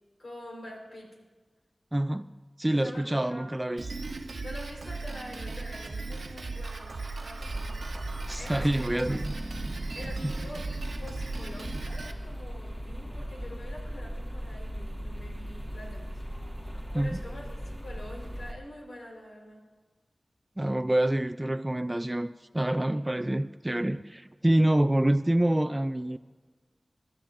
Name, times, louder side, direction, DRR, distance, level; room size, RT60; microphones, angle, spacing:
voice 1, 0.2-1.1 2.7-3.5 3.9-4.0 4.4-7.9 8.4-9.2 9.9-16.2 16.9-19.6, left 1 dB, 85° left, -1 dB, 4.2 m, -45 dB
voice 2, 1.9-2.3 2.6-3.9 8.3-9.3 10.2-10.3 16.9-17.2 20.6-26.2, right 1 dB, 20° right, 8 dB, 0.3 m, -27 dB
Drum kit, 3.8-12.1, right 3 dB, 85° right, 1.0 m, -37 dB
sound 1, 7.4-18.5, equal, 20° left, 1.8 m, -38 dB
22.0 x 13.0 x 2.6 m, 1.4 s
wide cardioid pair, 65°, 0 cm